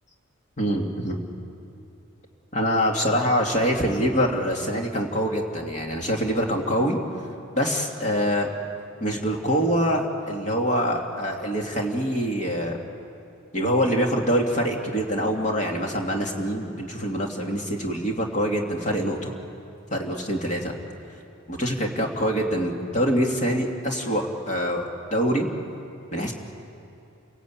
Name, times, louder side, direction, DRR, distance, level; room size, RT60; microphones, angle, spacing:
voice 1, 0.6-1.2 2.5-7.0 7.5-8.5 9.0-12.8 13.5-19.3 19.9-20.7 21.5-25.5 26.1-26.3, equal, 35° left, 1 dB, 2.7 m, -25 dB
29.0 x 17.5 x 8.8 m, 2.7 s
head